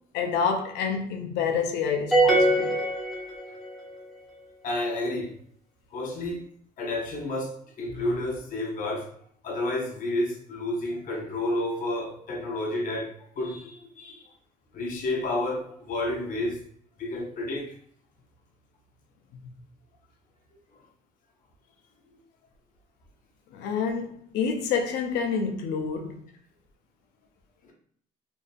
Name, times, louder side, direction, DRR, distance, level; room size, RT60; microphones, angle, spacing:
voice 1, 0.1-2.8 7.9-8.0 23.5-26.2, left 6 dB, 80° left, 0.5 m, -28 dB
sound 1, 2.1-3.8, right 1 dB, ahead, 0.9 m, -22 dB
voice 2, 4.6-5.3 5.9-6.4 6.8-7.5 7.8-9.1 9.4-13.1 13.4-14.3 14.7-16.6 17.0-17.7 27.6-27.7, left 1 dB, 50° left, 0.8 m, -30 dB
2.7 x 2.5 x 2.3 m
cardioid pair, 110°, 17 cm